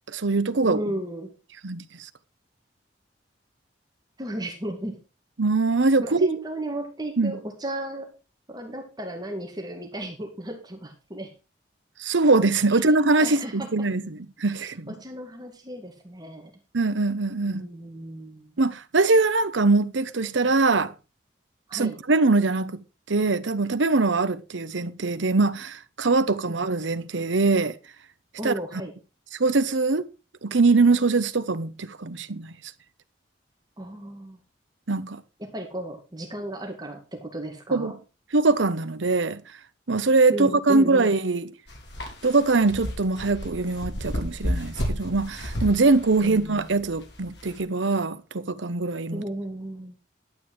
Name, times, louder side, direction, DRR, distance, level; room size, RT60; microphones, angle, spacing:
voice 1, 0.1-0.8 1.6-1.8 5.4-6.3 7.2-7.3 12.0-14.9 16.7-17.7 18.6-20.9 21.7-22.8 23.1-27.7 28.4-28.5 29.4-30.1 30.4-32.5 34.9-35.2 37.7-37.9 38.3-39.4 39.9-41.5 42.2-49.2, right 3 dB, 80° right, 0.9 m, -22 dB
voice 2, 0.7-1.3 4.2-5.0 6.1-8.1 8.5-11.3 13.2-13.9 14.6-16.5 17.5-18.6 21.7-22.0 26.5-26.6 28.4-28.9 33.8-34.4 35.4-37.9 40.3-41.1 46.2-46.7 49.1-50.0, right 1 dB, 20° right, 2.2 m, -34 dB
sound 1, 41.7-47.6, equal, 65° left, 3.9 m, -32 dB
11.5 x 8.9 x 4.7 m
head